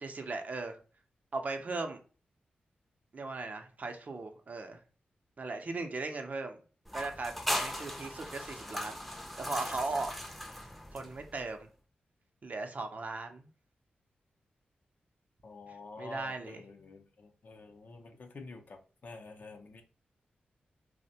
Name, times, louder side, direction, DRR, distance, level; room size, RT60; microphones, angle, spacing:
voice 1, 0.0-0.8 1.3-2.0 3.1-4.8 5.4-6.6 6.9-9.0 9.4-10.1 10.9-11.6 12.4-13.5 16.0-16.6, right 3 dB, 50° right, 0.5 m, -38 dB
sound 1, 6.9-11.4, left 1 dB, 5° left, 0.5 m, -38 dB
voice 2, 15.4-19.8, left 3 dB, 55° left, 0.5 m, -48 dB
2.5 x 2.1 x 2.7 m
cardioid pair, 60°, 3 cm